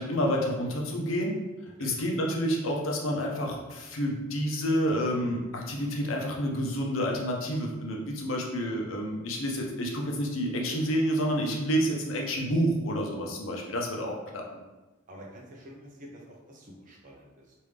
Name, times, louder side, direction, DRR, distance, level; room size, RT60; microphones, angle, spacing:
voice 1, 0.0-1.4 1.8-14.4, equal, 75° left, 0 dB, 0.6 m, -29 dB
voice 2, 15.1-17.5, equal, 40° right, -2 dB, 0.6 m, -48 dB
3.2 x 2.6 x 3.3 m, 1.1 s
head